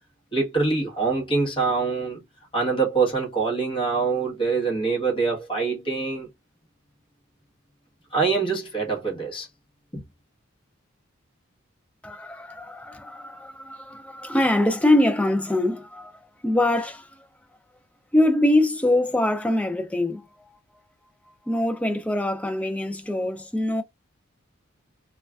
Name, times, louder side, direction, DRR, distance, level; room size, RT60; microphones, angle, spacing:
voice 1, 0.3-2.2 2.5-6.3 8.1-9.5 9.9-10.0, right 4 dB, 25° left, 1.2 m, -24 dB
voice 2, 12.0-17.3 18.1-20.3 21.5-23.8, left 1 dB, 5° left, 0.3 m, -23 dB
3.2 x 2.3 x 2.3 m
head